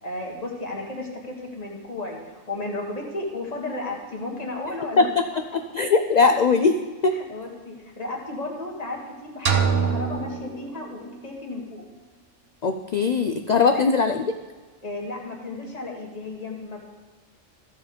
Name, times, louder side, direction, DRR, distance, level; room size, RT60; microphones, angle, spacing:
voice 1, 0.0-5.1 6.2-6.3 7.1-11.8 13.6-13.8 14.8-16.9, left 2 dB, 30° left, -1 dB, 1.7 m, -34 dB
voice 2, 5.7-6.8 7.0-7.2 12.6-14.2, left 4 dB, 85° left, 7 dB, 0.3 m, -20 dB
sound 1, 9.5-11.4, right 6 dB, 55° right, 1.0 m, -25 dB
14.0 x 4.7 x 5.1 m, 1.4 s
omnidirectional pair, 1.3 m